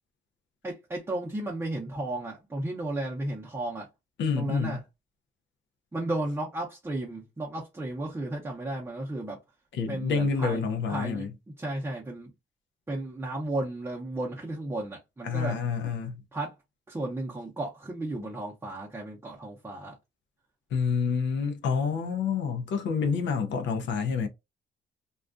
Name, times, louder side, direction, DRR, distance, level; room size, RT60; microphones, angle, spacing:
voice 1, 0.6-3.9 4.4-4.8 5.9-9.4 9.9-12.3 12.9-15.6 16.3-16.5 16.9-20.0, right 2 dB, 10° right, 0.6 m, -34 dB
voice 2, 4.2-4.8 9.7-11.3 15.2-16.2 20.7-24.3, left 5 dB, 65° left, 0.5 m, -28 dB
2.3 x 2.3 x 2.4 m
cardioid pair, 90°, 20 cm